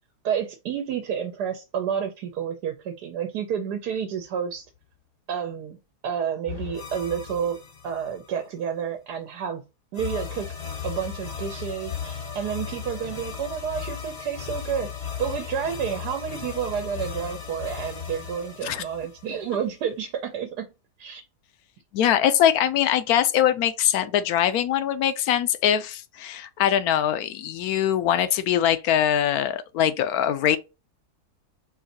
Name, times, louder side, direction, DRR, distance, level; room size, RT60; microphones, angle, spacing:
voice 1, 0.2-4.7 5.3-5.8 6.0-7.6 7.8-9.6 9.9-10.5 10.8-14.9 15.2-20.7 21.0-21.2, right 8 dB, 85° right, 1.3 m, -30 dB
sound 1, 6.4-8.3 9.9-19.7, left 7 dB, 45° left, 0.5 m, -36 dB
voice 2, 21.9-30.6, left 10 dB, 75° left, 1.0 m, -22 dB
4.7 x 2.6 x 3.9 m
omnidirectional pair, 1.7 m